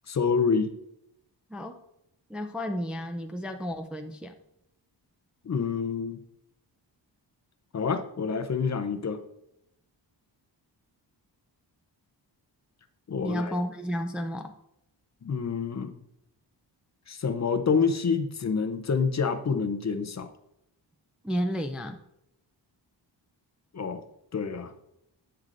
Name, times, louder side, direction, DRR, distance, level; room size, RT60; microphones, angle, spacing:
voice 1, 0.1-0.7 5.4-6.2 7.7-9.2 13.1-13.5 15.2-16.0 17.1-20.3 23.7-24.0 24.3-24.7, left 5 dB, 40° left, 8 dB, 0.6 m, -27 dB
voice 2, 2.3-4.4 13.2-14.5 21.2-22.0, equal, ahead, 5 dB, 0.4 m, -32 dB
10.5 x 7.8 x 2.6 m, 0.81 s
wide cardioid pair, 140°, 44 cm